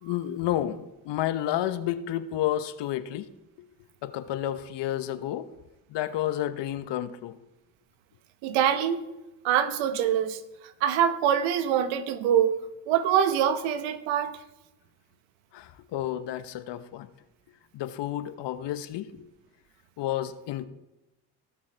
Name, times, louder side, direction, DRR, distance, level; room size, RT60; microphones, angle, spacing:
voice 1, 0.0-3.3 4.0-5.5 5.9-7.4 15.5-17.1 17.7-19.2 20.0-20.7, left 12 dB, 65° left, 12 dB, 0.9 m, -31 dB
voice 2, 8.4-9.0 9.4-10.4 10.8-14.4, right 9 dB, 80° right, 12 dB, 1.0 m, -24 dB
17.5 x 6.2 x 4.5 m, 1.0 s
supercardioid pair, 75°, 46 cm